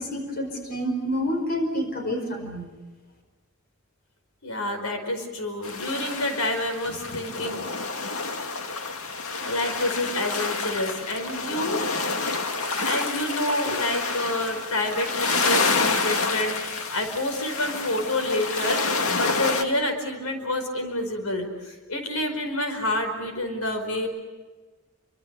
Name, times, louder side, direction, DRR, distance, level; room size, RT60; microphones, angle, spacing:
voice 1, 0.0-2.7, equal, 45° left, 5 dB, 5.0 m, -28 dB
voice 2, 4.4-7.6 9.4-11.8 12.8-24.1, left 1 dB, 85° left, 6 dB, 4.9 m, -28 dB
sound 1, 5.6-19.6, left 4 dB, 70° left, 2.2 m, -28 dB
29.0 x 25.0 x 6.8 m, 1.3 s
head